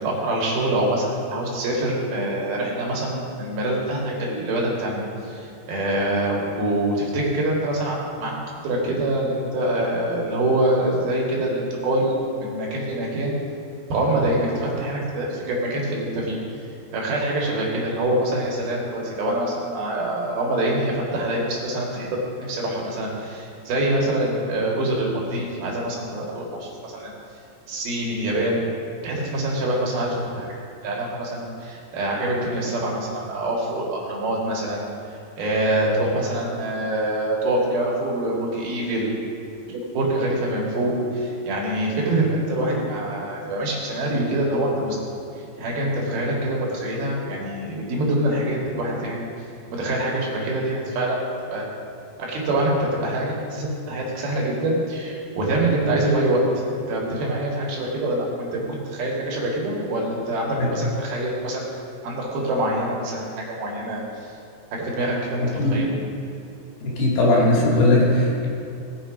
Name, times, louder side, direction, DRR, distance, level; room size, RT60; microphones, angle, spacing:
voice 1, 0.0-8.3 8.6-13.4 13.9-27.1 27.7-28.7 29.0-30.5 30.8-34.9 35.4-39.1 39.7-45.0 45.6-51.2 51.5-51.7 52.2-56.4 56.9-61.7 62.0-64.3 64.7-66.0, right 1 dB, 70° right, -3 dB, 3.8 m, -25 dB
voice 2, 65.4-65.8 66.8-68.5, left 2 dB, 75° left, -4 dB, 4.5 m, -19 dB
19.0 x 7.2 x 5.0 m, 2.5 s
omnidirectional pair, 4.7 m